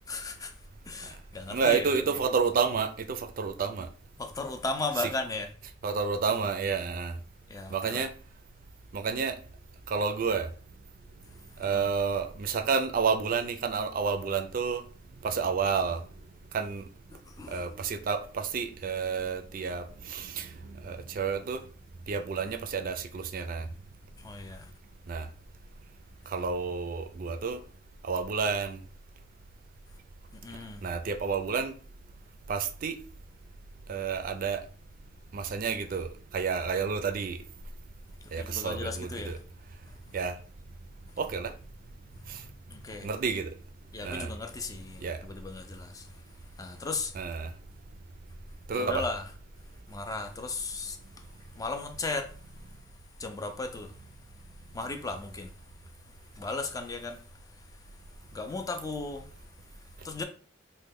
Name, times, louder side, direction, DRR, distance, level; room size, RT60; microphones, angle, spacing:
voice 1, 0.1-0.5 0.9-2.2 4.2-5.5 7.5-8.1 11.6-11.9 17.4-17.8 24.2-24.7 30.4-30.8 38.3-39.4 42.7-43.1 43.9-46.0 46.6-47.1 48.7-49.2 49.9-51.0 51.6-52.3 53.2-53.9 54.7-55.5 56.4-57.2 58.3-59.2 60.0-60.2, left 3 dB, 20° left, 0.4 m, -36 dB
voice 2, 1.5-3.9 5.0-5.1 5.8-7.2 7.7-8.1 8.9-9.4 9.9-10.5 11.6-14.8 15.2-16.0 16.5-16.8 17.5-20.5 20.8-21.6 22.1-23.7 25.1-25.3 26.3-27.6 28.1-28.8 30.8-31.7 32.5-33.0 33.9-34.6 35.3-36.1 36.3-37.4 38.3-39.4 40.1-40.4 41.2-41.5 43.0-43.5 44.0-44.3 45.0-45.2 47.2-47.5 48.7-49.0, right 5 dB, 50° right, 0.4 m, -30 dB
3.1 x 2.1 x 3.5 m
head